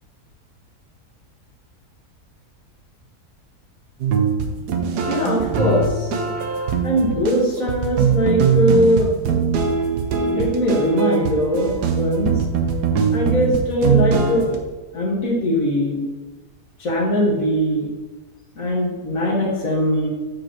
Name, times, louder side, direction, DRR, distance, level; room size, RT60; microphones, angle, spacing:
sound 1, 4.0-14.6, right 6 dB, 80° right, 1.4 m, -21 dB
voice 1, 5.1-6.1 6.8-9.1 10.2-12.3 13.1-14.4 14.9-16.0 16.8-17.9 18.6-20.1, equal, 60° left, -3 dB, 2.2 m, -20 dB
8.7 x 5.0 x 3.1 m, 1.2 s
omnidirectional pair, 1.7 m